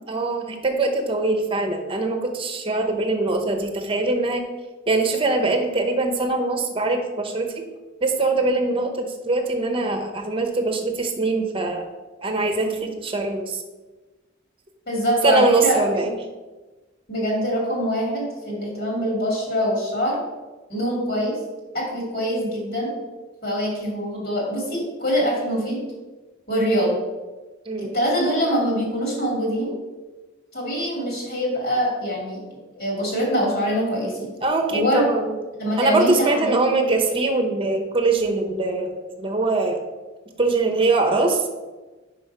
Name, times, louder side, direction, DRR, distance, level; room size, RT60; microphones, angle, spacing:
voice 1, 0.1-4.4 4.9-7.6 8.0-11.9 12.2-13.6 15.2-16.1 27.7-27.9 34.4-35.3 35.8-39.8 40.4-41.4, right 3 dB, 25° right, 5 dB, 0.9 m, -22 dB
voice 2, 14.9-15.8 17.1-20.2 20.7-21.4 21.7-22.9 23.4-25.8 26.5-27.0 27.8-29.8 30.5-32.4 32.7-34.3 34.7-35.1 35.6-36.5, equal, 50° left, -3 dB, 2.4 m, -24 dB
5.5 x 5.2 x 5.5 m, 1.2 s
head